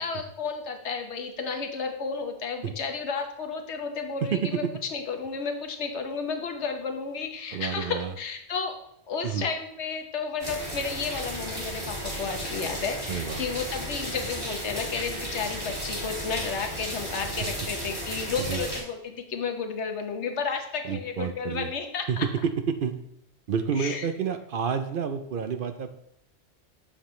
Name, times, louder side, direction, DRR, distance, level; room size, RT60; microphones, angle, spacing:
voice 1, 0.0-8.8 9.1-22.3 23.8-24.1, left 5 dB, 90° left, 5 dB, 1.3 m, -32 dB
voice 2, 7.5-8.1 9.2-9.5 13.1-13.4 18.4-18.6 20.9-21.7 22.1-22.3 22.7-22.9 23.5-25.9, right 7 dB, 60° right, 9 dB, 0.7 m, -29 dB
sound 1, 10.4-18.8, equal, 25° right, 2.9 m, -34 dB
7.3 x 7.1 x 3.1 m, 0.76 s
omnidirectional pair, 1.1 m